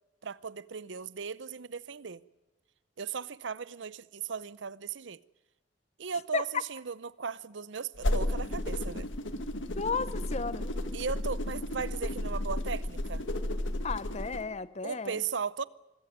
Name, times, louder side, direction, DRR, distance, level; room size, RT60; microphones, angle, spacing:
voice 1, 0.2-2.2 3.0-5.2 6.0-9.1 10.9-13.2 14.8-15.7, right 6 dB, 75° right, 0.7 m, -37 dB
sound 1, 8.0-14.4, left 1 dB, 90° left, 1.8 m, -33 dB
voice 2, 9.8-10.7 13.8-15.2, left 4 dB, 35° left, 0.7 m, -33 dB
25.5 x 15.5 x 9.4 m
head